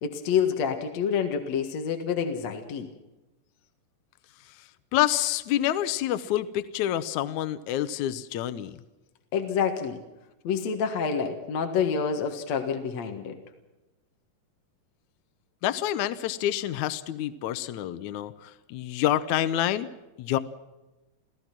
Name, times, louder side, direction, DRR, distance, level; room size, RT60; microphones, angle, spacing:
voice 1, 0.0-2.9 9.3-10.0 10.4-13.4, left 6 dB, 55° left, 4 dB, 2.5 m, -27 dB
voice 2, 4.9-8.8 15.6-19.9 20.2-20.4, left 12 dB, 75° left, 11 dB, 1.8 m, -27 dB
29.0 x 16.5 x 6.0 m, 1.1 s
omnidirectional pair, 4.3 m